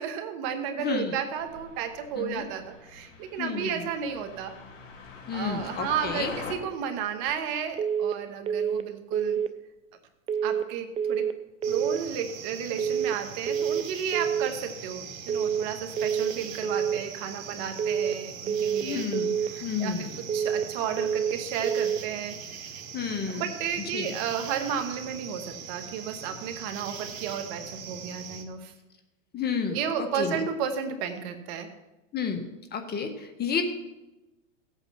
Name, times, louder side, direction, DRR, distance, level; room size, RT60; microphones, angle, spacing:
voice 1, 0.0-4.5 5.3-9.4 10.4-11.3 11.7-19.1 19.4-22.4 23.3-28.7 29.7-31.7, right 8 dB, 50° right, 7 dB, 1.9 m, -33 dB
voice 2, 0.8-1.1 2.2-2.5 3.4-3.9 5.3-6.3 18.8-19.3 19.6-20.2 22.9-23.5 23.9-24.1 29.3-29.8 30.1-30.5 32.1-32.4 32.7-33.6, left 6 dB, 25° left, 7 dB, 1.6 m, -31 dB
sound 1, 1.4-6.6, left 4 dB, 70° left, 3.7 m, -44 dB
sound 2, 7.8-8.2 8.5-8.9 9.1-9.5 10.3-10.7 11.0-11.4 11.6-12.0 12.8-13.2 13.5-13.9 14.1-14.5 15.3-15.7 16.0-16.4 16.6-17.0 17.8-18.2 18.5-18.9 19.1-19.5 20.3-20.7 21.0-21.4 21.6-22.0, right 7 dB, 15° right, 0.5 m, -27 dB
sound 3, 11.6-28.4, right 6 dB, 80° right, 1.9 m, -41 dB
16.0 x 8.3 x 5.8 m, 1.0 s
hypercardioid pair, 125°, 39 cm